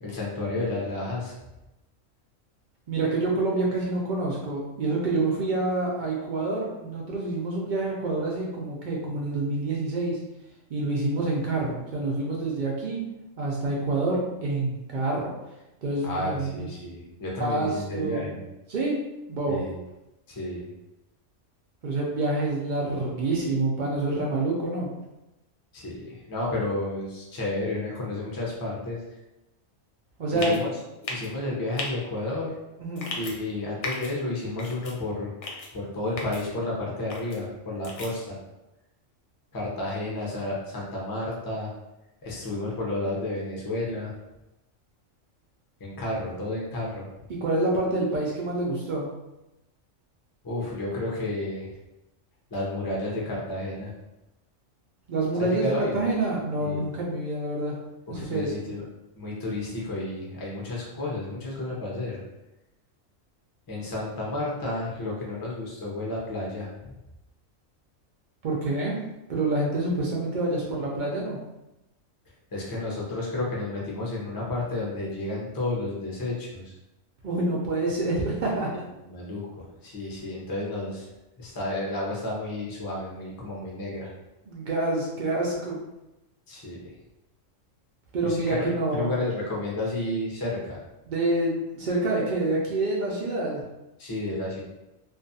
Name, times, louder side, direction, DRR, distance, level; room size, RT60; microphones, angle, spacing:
voice 1, 0.0-1.3 16.0-18.4 19.5-19.7 20.3-20.7 25.7-29.0 30.3-30.7 31.1-32.5 33.1-35.3 35.7-38.4 39.5-41.7 42.2-44.1 45.8-47.0 50.4-51.7 52.5-53.9 55.4-56.0 56.6-56.9 58.1-58.8 59.1-62.2 63.7-66.9 72.5-76.7 79.1-81.1 81.4-84.1 86.5-86.8 88.2-90.8 94.0-94.6, left 2 dB, 30° left, -4 dB, 0.4 m, -31 dB
voice 2, 2.9-10.2 10.7-13.0 13.4-15.3 15.8-16.7 17.4-18.3 18.7-19.0 19.3-19.6 21.8-24.9 30.2-30.6 32.8-33.1 47.3-49.1 55.1-57.8 58.1-58.5 68.4-69.0 69.3-71.4 77.2-78.7 84.5-85.8 88.1-89.1 91.1-93.6, right 2 dB, 80° right, -3 dB, 0.4 m, -27 dB
sound 1, 30.4-30.6 31.0-31.3 31.8-31.9 33.0-33.3 33.8-34.1 34.6-34.9 35.4-35.7 36.2-36.4 37.1-37.4 37.8-38.1, left 3 dB, 70° left, 0.8 m, -34 dB
2.4 x 2.3 x 2.6 m, 0.95 s
omnidirectional pair, 1.4 m